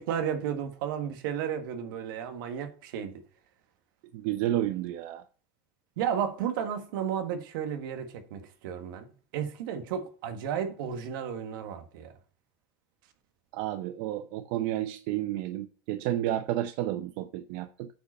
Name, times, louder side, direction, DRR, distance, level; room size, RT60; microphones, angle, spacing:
voice 1, 0.0-3.1 6.0-12.1, right 8 dB, 85° right, 1.6 m, -33 dB
voice 2, 4.1-5.2 13.5-17.9, right 13 dB, 65° right, 0.7 m, -31 dB
8.9 x 5.2 x 5.5 m
supercardioid pair, 140°, 11 cm